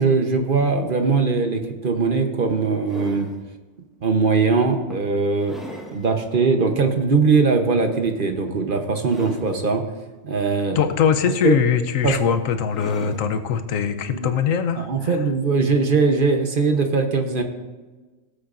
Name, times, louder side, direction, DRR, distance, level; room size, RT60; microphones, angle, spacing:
voice 1, 0.0-3.3 4.0-5.6 5.9-9.8 10.2-10.8 11.4-11.6 12.0-12.2 13.0-13.1 14.1-14.3 14.8-17.4, right 4 dB, 45° right, 5 dB, 1.0 m, -20 dB
sound 1, 1.7-1.8 2.4-3.4 4.1-4.3 4.9-6.1 6.5-6.6 8.2-8.6 8.9-9.7 10.9-11.8 12.7-13.3 14.7-14.8, equal, ahead, 1.1 m, -40 dB
voice 2, 10.7-15.2, left 7 dB, 75° left, 9 dB, 1.1 m, -22 dB
17.0 x 8.2 x 2.6 m, 1.3 s
omnidirectional pair, 1.4 m